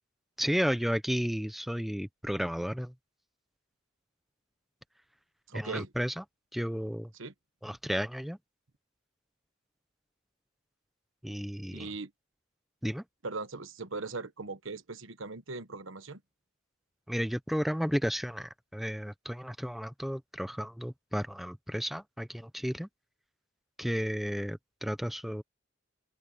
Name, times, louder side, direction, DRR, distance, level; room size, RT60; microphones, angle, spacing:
voice 1, 0.4-2.9 5.5-6.2 6.5-7.1 7.6-8.4 11.2-11.9 12.8-13.0 17.1-22.9 23.8-25.4, equal, ahead, 0.7 m, -33 dB
voice 2, 5.5-5.9 7.1-7.3 11.7-12.1 13.2-16.2, right 3 dB, 75° right, 1.3 m, -39 dB
open air
head